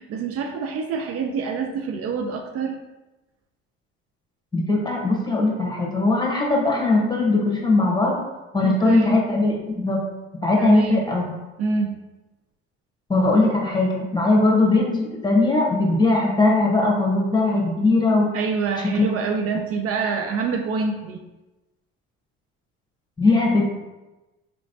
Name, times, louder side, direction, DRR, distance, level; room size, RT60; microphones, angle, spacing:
voice 1, 0.0-2.8 8.6-9.2 10.6-11.1 11.6-12.0 18.3-21.2, right 5 dB, 55° right, 4 dB, 0.5 m, -26 dB
voice 2, 4.5-8.2 8.5-10.0 10.4-11.3 13.1-18.3 19.0-19.1 23.2-23.7, left 2 dB, 15° left, -1 dB, 1.2 m, -20 dB
4.3 x 3.1 x 2.7 m, 1.1 s
supercardioid pair, 75°, 29 cm